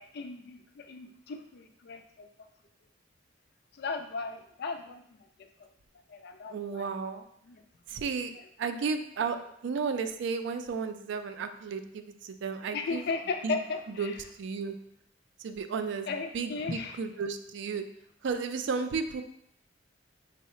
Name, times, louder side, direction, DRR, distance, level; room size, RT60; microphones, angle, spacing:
voice 1, 0.0-2.3 3.7-5.2 6.1-6.9 7.5-7.6 12.7-14.1 16.1-17.0, left 4 dB, 55° left, 6 dB, 0.4 m, -36 dB
voice 2, 6.5-7.2 7.9-8.3 8.6-9.4 9.6-13.1 13.4-13.6 14.0-14.7 15.4-17.8 18.2-19.2, right 5 dB, 65° right, 8 dB, 0.3 m, -33 dB
4.6 x 2.0 x 4.2 m, 0.72 s
head